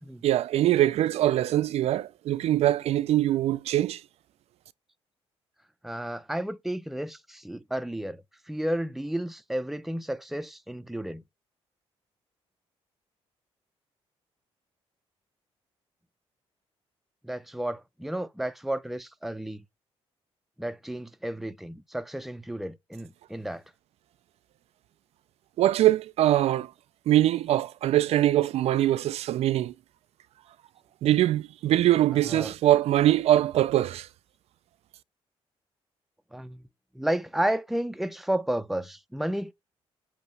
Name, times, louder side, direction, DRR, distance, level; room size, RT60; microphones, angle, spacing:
voice 1, 0.2-4.0 25.6-26.7 27.1-29.7 31.0-34.1, right 13 dB, 75° right, 0.4 m, -23 dB
voice 2, 5.8-11.2 17.2-19.6 20.6-23.6 32.3-32.5 36.3-36.6 36.9-39.5, right 1 dB, ahead, 0.6 m, -32 dB
8.3 x 3.0 x 5.2 m
cardioid pair, 100°, 11 cm